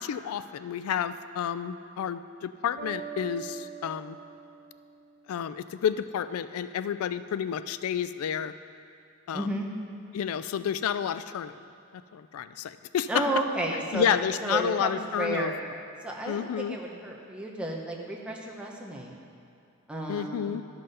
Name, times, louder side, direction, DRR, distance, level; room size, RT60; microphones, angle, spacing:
voice 1, 0.0-4.2 5.3-8.5 9.3-9.5 10.1-11.6 12.1-13.3 13.7-15.5 16.3-16.8 20.1-20.6, left 8 dB, 85° left, 13 dB, 0.3 m, -30 dB
sound 1, 2.8-5.6, right 8 dB, 40° right, 0.9 m, -43 dB
voice 2, 9.3-9.7 13.1-14.1 14.4-15.6 16.0-19.1 19.9-20.5, right 1 dB, 5° right, -2 dB, 1.0 m, -32 dB
12.5 x 5.7 x 5.4 m, 2.6 s
head